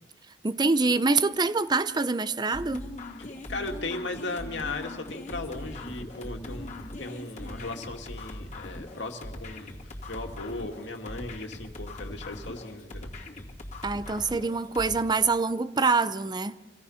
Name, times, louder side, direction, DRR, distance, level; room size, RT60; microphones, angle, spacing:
voice 1, 0.4-2.8 13.8-16.5, right 4 dB, 25° right, 0.6 m, -25 dB
sound 1, 2.5-15.0, left 1 dB, 40° left, 2.4 m, -40 dB
voice 2, 3.2-6.7 7.0-9.7 10.1-13.1, left 2 dB, 85° left, 2.3 m, -37 dB
26.0 x 17.5 x 5.7 m
head